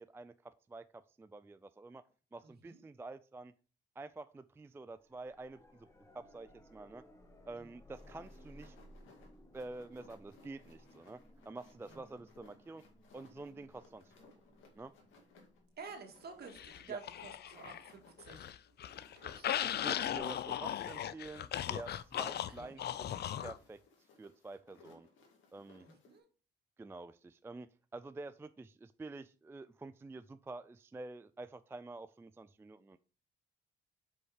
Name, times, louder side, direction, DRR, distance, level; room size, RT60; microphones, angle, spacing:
voice 1, 0.0-2.0 2.3-3.5 4.0-5.9 6.1-7.0 7.5-8.8 9.5-12.8 13.1-14.3 14.8-14.9 16.9-17.0 19.6-23.8 24.2-25.1 25.5-25.9 26.8-33.0, right 2 dB, 10° right, 12 dB, 0.3 m, -48 dB
voice 2, 2.4-2.8 7.6-7.7 11.9-12.1 15.8-18.5 19.2-19.5 22.5-22.8 25.8-26.2, right 5 dB, 55° right, 3 dB, 2.1 m, -51 dB
sound 1, 4.9-17.8 20.2-20.3, equal, 15° left, 1.7 m, -61 dB
sound 2, 7.9-26.2, left 3 dB, 80° left, 1.9 m, -63 dB
sound 3, 16.5-17.9 18.2-23.6, left 10 dB, 55° left, 0.5 m, -38 dB
5.6 x 5.4 x 4.8 m, 0.38 s
cardioid pair, 90°, 20 cm